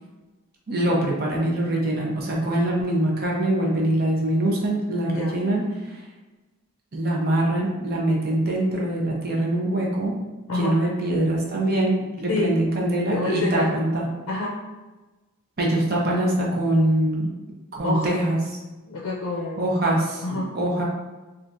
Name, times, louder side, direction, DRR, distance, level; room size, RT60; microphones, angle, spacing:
voice 1, 0.7-6.0 6.9-10.2 10.5-14.0 15.6-17.3 17.7-18.4 19.6-20.8, right 1 dB, 45° right, -2 dB, 0.7 m, -23 dB
voice 2, 5.1-5.4 10.5-10.8 12.3-12.6 13.1-13.7 14.3-14.6 17.8-18.2 18.9-19.8 20.2-20.5, left 2 dB, 65° left, -3 dB, 0.5 m, -27 dB
3.3 x 2.4 x 2.5 m, 1.2 s
head